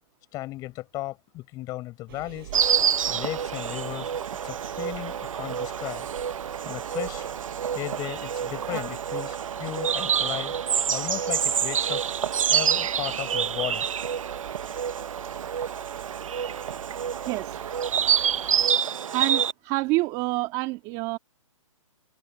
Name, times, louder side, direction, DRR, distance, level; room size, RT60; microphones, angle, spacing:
voice 1, 0.3-2.5 3.1-4.1 4.4-6.1 6.6-7.3 7.7-10.5 10.9-12.0 12.5-13.9, left 17 dB, 20° left, 6.4 m, -35 dB
sound 1, 2.1-18.7, right 13 dB, 40° right, 7.9 m, -44 dB
Insect, 2.5-19.5, right 8 dB, 70° right, 1.0 m, -27 dB
voice 2, 17.2-17.6 19.1-21.2, right 22 dB, 25° right, 2.2 m, -28 dB
hypercardioid pair, 155°, 18 cm